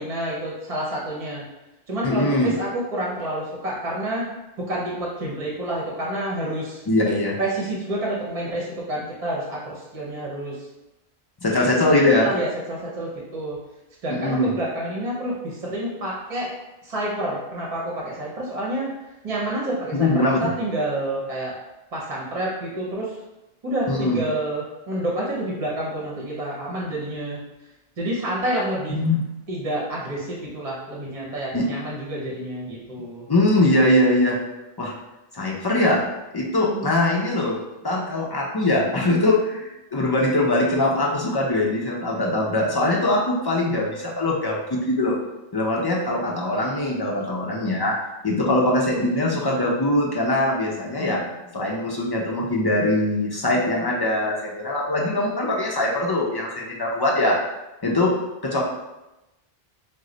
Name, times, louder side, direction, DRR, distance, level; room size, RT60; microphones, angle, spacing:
voice 1, 0.0-1.4 1.9-4.3 4.6-6.8 7.4-10.6 11.7-13.6 14.0-16.5 16.8-18.9 19.2-21.5 21.9-23.2 23.6-27.4 28.0-29.0 29.5-33.2 36.6-36.9 51.0-51.5, right 1 dB, 40° right, -4 dB, 0.8 m, -28 dB
voice 2, 2.0-2.5 6.9-7.4 11.4-12.3 14.1-14.5 19.9-20.5 23.9-24.2 28.9-29.2 31.5-31.7 33.3-34.4 34.8-34.9 35.3-36.0 36.3-37.6 37.8-45.2 45.5-47.9 48.2-51.2 51.5-57.4 57.8-58.1 58.4-58.6, left 1 dB, 35° left, -3 dB, 0.4 m, -22 dB
3.1 x 2.1 x 3.7 m, 0.97 s
omnidirectional pair, 1.0 m